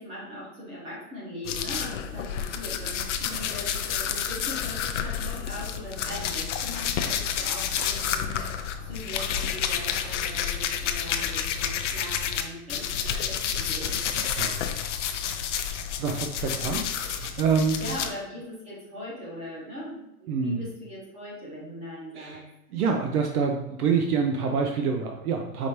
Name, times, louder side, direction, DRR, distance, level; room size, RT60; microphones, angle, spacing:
voice 1, 0.0-14.0 17.7-22.5, left 1 dB, 15° right, -6 dB, 0.9 m, -40 dB
sound 1, 1.4-12.4 12.7-18.1, left 8 dB, 55° left, 0.5 m, -30 dB
voice 2, 16.0-17.8 20.3-20.6 22.1-22.4 22.7-25.7, right 5 dB, 75° right, 3 dB, 0.7 m, -26 dB
5.0 x 3.3 x 2.8 m, 0.91 s
hypercardioid pair, 160°, 45 cm